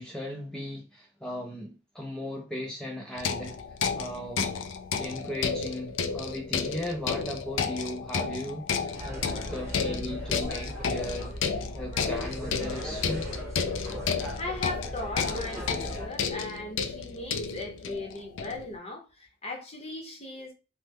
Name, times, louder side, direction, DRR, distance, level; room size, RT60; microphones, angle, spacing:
voice 1, 0.0-3.6 3.9-4.5 5.0-11.3 11.7-13.3, left 1 dB, 5° left, 0.4 m, -37 dB
sound 1, 3.2-18.8, left 6 dB, 75° left, 0.3 m, -32 dB
sound 2, 8.9-16.1, right 1 dB, 15° right, 0.9 m, -38 dB
voice 2, 14.4-20.5, left 2 dB, 35° left, 0.7 m, -38 dB
3.2 x 2.0 x 3.4 m
head